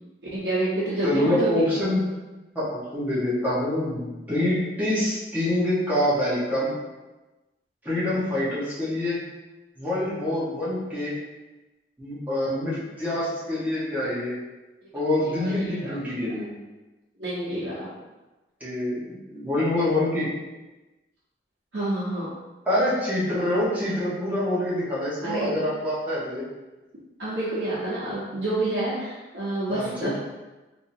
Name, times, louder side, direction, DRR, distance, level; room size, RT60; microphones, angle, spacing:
voice 1, 0.3-1.7 5.0-5.1 15.2-16.0 17.2-17.9 21.7-22.3 25.2-25.5 27.2-30.1, right 1 dB, 85° right, -11 dB, 1.1 m, -28 dB
voice 2, 1.0-2.1 2.5-6.8 7.8-9.2 9.8-11.2 12.0-14.3 14.9-16.5 18.6-20.3 22.7-26.4 29.7-30.2, left 1 dB, 10° right, -10 dB, 1.2 m, -26 dB
3.7 x 2.9 x 2.7 m, 1.1 s
head